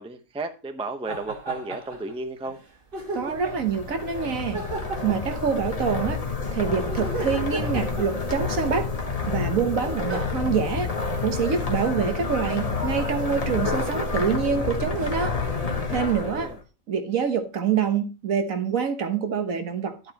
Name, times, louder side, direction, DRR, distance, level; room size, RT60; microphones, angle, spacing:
voice 1, 0.0-2.6 16.1-16.6, right 2 dB, 5° right, 6 dB, 0.7 m, -34 dB
sound 1, 1.1-2.2 2.4-2.6 2.9-3.7 4.5-6.0 6.8-8.6 9.6-9.7 10.1-10.3, right 3 dB, 40° right, 1.5 m, -35 dB
sound 2, 3.1-16.6, left 4 dB, 25° left, 1.2 m, -29 dB
voice 2, 3.1-4.6 5.0-6.2 6.5-8.9 9.3-10.9 11.2-15.3 15.9-16.5 16.9-20.1, right 6 dB, 65° right, 7 dB, 1.5 m, -26 dB
11.5 x 7.9 x 2.9 m, 0.32 s
omnidirectional pair, 1.5 m